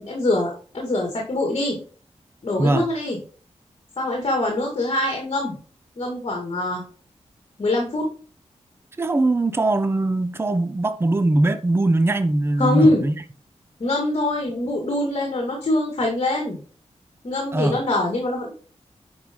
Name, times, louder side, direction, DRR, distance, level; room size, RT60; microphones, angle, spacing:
voice 1, 0.0-1.8 2.4-3.2 4.0-5.5 6.0-6.8 7.6-8.1 12.6-13.0 13.8-16.6 17.2-18.5, left 1 dB, 50° left, 2.2 m, -23 dB
voice 2, 9.0-13.1 17.5-17.8, right 2 dB, 20° right, 0.6 m, -21 dB
10.0 x 4.8 x 3.7 m
wide cardioid pair, 110°, 12 cm